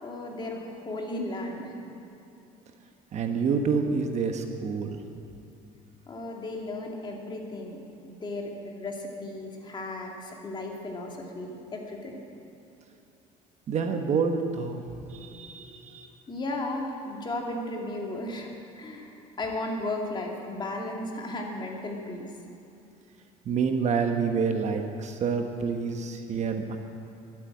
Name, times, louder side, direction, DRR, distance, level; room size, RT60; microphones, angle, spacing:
voice 1, 0.0-1.8 6.1-12.2 16.3-18.5 18.8-19.1 19.4-22.3, left 2 dB, 30° left, 0 dB, 2.4 m, -35 dB
voice 2, 3.1-5.0 13.7-14.8 15.1-16.1 23.4-26.8, right 5 dB, 45° right, 5 dB, 1.2 m, -28 dB
12.5 x 8.4 x 8.6 m, 2.8 s
supercardioid pair, 100°, 16 cm